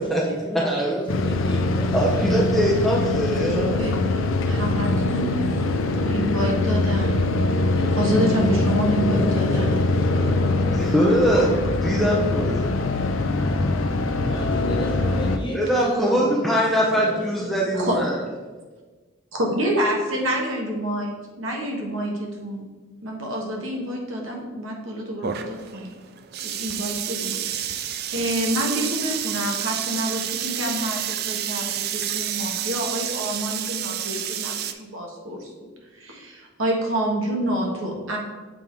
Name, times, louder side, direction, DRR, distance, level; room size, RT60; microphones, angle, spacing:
voice 1, 0.0-2.5 6.9-7.4 7.7-8.2 8.5-10.9 14.2-16.4 16.7-17.8, equal, 25° left, -3 dB, 1.5 m, -35 dB
voice 2, 0.6-1.0 1.9-4.1 10.7-11.5 11.8-12.7 15.5-18.2, equal, ahead, -4 dB, 0.6 m, -22 dB
sound 1, 1.1-15.4, left 2 dB, 75° left, 0.5 m, -23 dB
voice 3, 3.8-5.3 6.0-7.2 8.0-9.7 17.8-18.0 19.3-22.6 23.0-25.9 26.4-35.5 35.9-38.2, right 1 dB, 80° right, 0 dB, 1.4 m, -28 dB
sound 2, 25.2-34.7, right 10 dB, 50° right, 0.4 m, -29 dB
7.0 x 3.7 x 4.5 m, 1.3 s
head